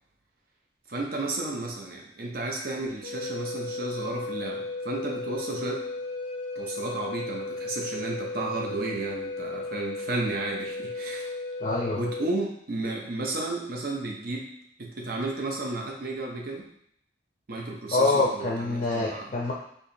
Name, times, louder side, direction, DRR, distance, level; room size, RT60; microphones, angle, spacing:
voice 1, 0.9-5.8 6.6-11.3 11.9-14.5 14.8-16.7 17.5-19.3, right 2 dB, 55° right, 0 dB, 0.7 m, -33 dB
Wind instrument woodwind instrument, 3.0-12.3, left 3 dB, 90° left, 0.6 m, -35 dB
voice 2, 11.6-12.0 17.9-19.5, left 2 dB, 35° left, -3 dB, 0.5 m, -25 dB
4.7 x 2.8 x 2.7 m, 0.70 s
head